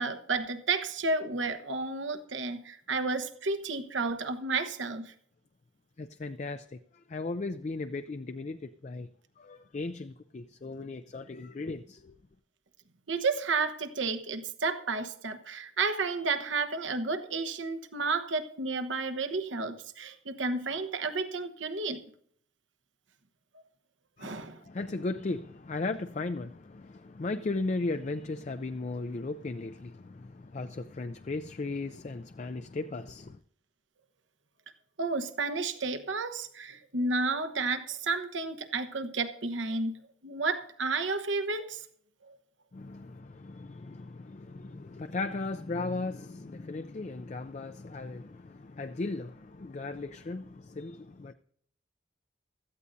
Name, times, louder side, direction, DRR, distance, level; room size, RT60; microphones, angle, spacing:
voice 1, 0.0-5.1 13.1-22.1 24.2-24.6 35.0-41.9 42.2-42.4, right 3 dB, 80° right, 1.1 m, -32 dB
voice 2, 6.0-9.1 9.4-12.1 24.2-33.4 42.7-51.3, left 3 dB, 40° left, 0.4 m, -36 dB
16.5 x 13.5 x 2.7 m
head